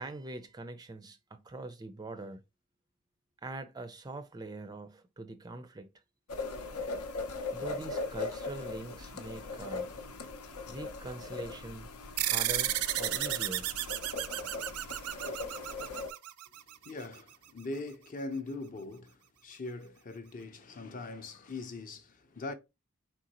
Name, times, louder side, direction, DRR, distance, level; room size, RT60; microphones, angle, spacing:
voice 1, 0.0-2.4 3.4-5.9 7.5-9.9 10.7-11.9 12.2-13.7, right 2 dB, 20° right, 0.4 m, -43 dB
sound 1, 6.3-16.1, left 3 dB, 85° left, 0.8 m, -39 dB
sound 2, 12.2-17.0, right 14 dB, 80° right, 0.4 m, -33 dB
voice 2, 16.8-22.5, left 2 dB, 35° left, 0.6 m, -41 dB
4.5 x 3.8 x 2.8 m
head